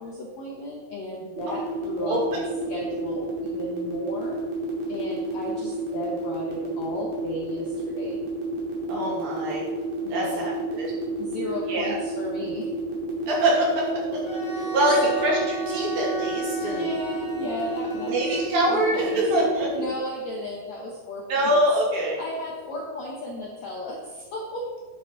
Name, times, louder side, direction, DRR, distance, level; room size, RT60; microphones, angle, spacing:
voice 1, 0.0-4.4 4.9-8.2 10.0-10.6 11.2-12.7 14.7-14.8 15.0-15.3 16.6-18.1 18.7-19.2 19.7-21.5 22.2-24.7, left 1 dB, 65° left, -2 dB, 1.7 m, -35 dB
sound 1, 1.4-19.8, left 1 dB, 40° right, 3.1 m, -31 dB
voice 2, 8.9-9.6 10.1-10.9 11.7-12.0 13.3-13.9 14.7-15.4 15.7-16.9 18.1-19.7 21.3-22.2, right 1 dB, 60° right, -4 dB, 4.1 m, -24 dB
Bowed string instrument, 14.2-19.2, right 4 dB, 15° right, 2.6 m, -35 dB
10.0 x 9.8 x 4.0 m, 1.4 s
omnidirectional pair, 4.8 m